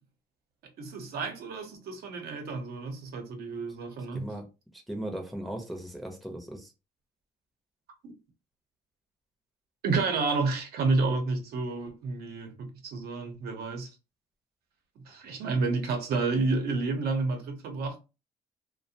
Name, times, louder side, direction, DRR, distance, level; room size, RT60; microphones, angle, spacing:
voice 1, 0.8-4.3 9.8-13.9 15.1-18.0, right 3 dB, 70° right, 0.8 m, -30 dB
voice 2, 4.9-6.7, right 1 dB, ahead, 0.6 m, -37 dB
2.4 x 2.1 x 2.7 m
cardioid pair, 110°, 17 cm